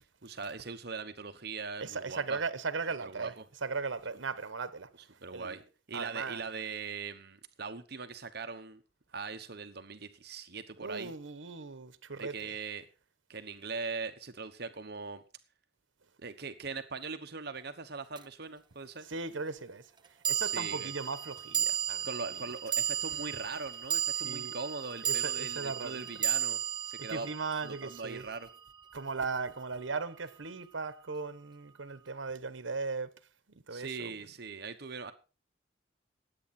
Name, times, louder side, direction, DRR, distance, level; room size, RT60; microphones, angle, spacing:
voice 1, 0.2-2.4 3.0-3.4 5.2-5.6 5.9-8.8 9.1-11.1 12.2-12.9 13.3-15.2 16.2-19.1 20.5-20.9 22.0-26.6 26.9-27.3 27.6-28.5 33.7-35.1, right 4 dB, 55° right, 1.1 m, -41 dB
voice 2, 1.8-3.3 3.6-5.6 5.9-6.4 10.8-12.5 19.1-19.9 20.3-22.4 24.2-24.6 25.0-26.1 27.0-28.2 28.9-33.2 33.5-34.1, right 4 dB, 90° right, 1.1 m, -38 dB
sound 1, 18.2-18.3 20.2-28.7, right 9 dB, 25° right, 0.6 m, -34 dB
19.5 x 8.6 x 4.3 m
head